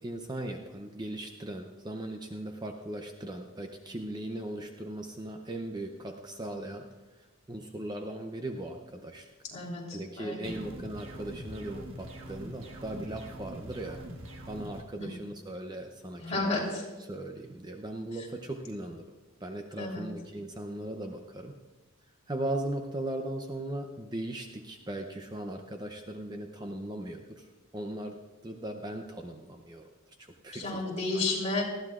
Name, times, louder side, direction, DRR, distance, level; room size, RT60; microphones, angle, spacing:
voice 1, 0.0-9.3 9.9-14.0 14.5-16.6 17.0-19.2 19.4-21.6 22.3-28.2 28.4-29.9 30.2-30.8 31.1-31.3, right 1 dB, 20° right, 4 dB, 0.6 m, -38 dB
voice 2, 9.5-10.5 15.0-15.1 16.2-16.8 19.8-20.1 30.5-31.6, left 2 dB, 30° left, -3 dB, 3.6 m, -32 dB
sound 1, 10.4-14.8, equal, 70° right, 1.4 m, -43 dB
19.5 x 14.5 x 2.5 m, 1.2 s
head